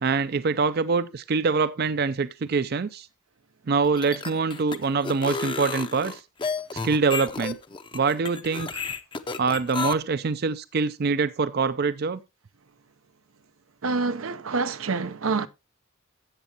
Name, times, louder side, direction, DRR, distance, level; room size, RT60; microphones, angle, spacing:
voice 1, 0.0-3.1 3.7-6.2 6.8-7.6 7.9-8.8 9.4-12.2, right 4 dB, 50° right, 0.5 m, -24 dB
sound 1, 3.8-9.9, left 4 dB, 25° left, 0.6 m, -32 dB
voice 2, 13.8-15.5, right 4 dB, 80° right, 0.7 m, -27 dB
13.5 x 8.2 x 2.8 m
head